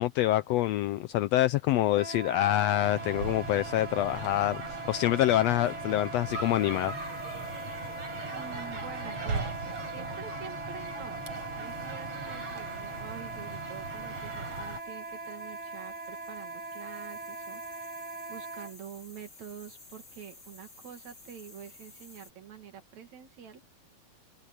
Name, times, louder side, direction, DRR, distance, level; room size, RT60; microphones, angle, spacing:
voice 1, 0.0-4.6 4.9-6.9, left 14 dB, 80° left, 1.5 m, -26 dB
Wind instrument woodwind instrument, 1.9-18.7, right 2 dB, 5° right, 1.8 m, -41 dB
Theme Park Terra Mittica Benidorm, 2.8-14.8, right 3 dB, 50° right, 5.6 m, -39 dB
sound 1, 6.3-22.3, left 3 dB, 35° left, 6.0 m, -57 dB
voice 2, 8.3-11.2 11.6-18.0 18.3-23.6, right 8 dB, 70° right, 3.5 m, -47 dB
omnidirectional pair, 3.4 m